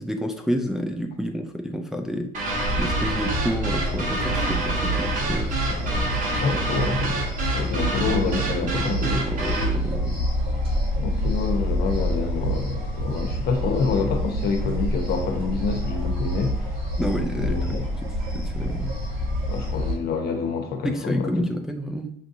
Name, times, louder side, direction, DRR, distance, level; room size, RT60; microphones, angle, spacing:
voice 1, 0.0-2.3 2.8-6.6 7.1-7.2 7.6-10.3 17.0-17.6 18.0-18.9 20.8-22.1, equal, 5° right, 3 dB, 0.3 m, -30 dB
sound 1, 2.3-9.8, right 2 dB, 50° right, 1.1 m, -28 dB
sound 2, 2.5-20.0, equal, 80° right, 1.5 m, -27 dB
voice 2, 6.4-7.2 7.5-9.2 11.0-16.5 17.4-17.8 19.5-21.6, left 4 dB, 70° left, 4 dB, 0.9 m, -27 dB
5.8 x 2.6 x 2.6 m, 0.69 s
cardioid pair, 110°, 17 cm